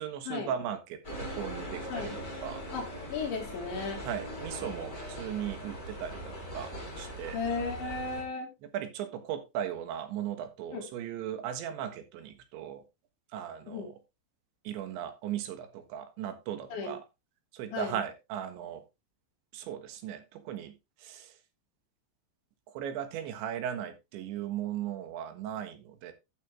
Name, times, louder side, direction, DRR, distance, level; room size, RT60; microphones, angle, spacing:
voice 1, 0.0-2.6 4.0-7.4 8.7-12.8 13.3-14.0 14.7-17.0 17.5-18.8 19.5-20.7 21.0-21.3 22.7-26.1, right 10 dB, 85° right, 3.8 m, -37 dB
sound 1, 1.0-8.2, equal, 15° left, 6.3 m, -40 dB
voice 2, 2.7-4.0 7.3-8.5 10.7-10.9 13.7-13.9 16.7-17.0 17.7-18.0, left 4 dB, 80° left, 5.5 m, -35 dB
12.0 x 7.7 x 3.3 m
omnidirectional pair, 5.1 m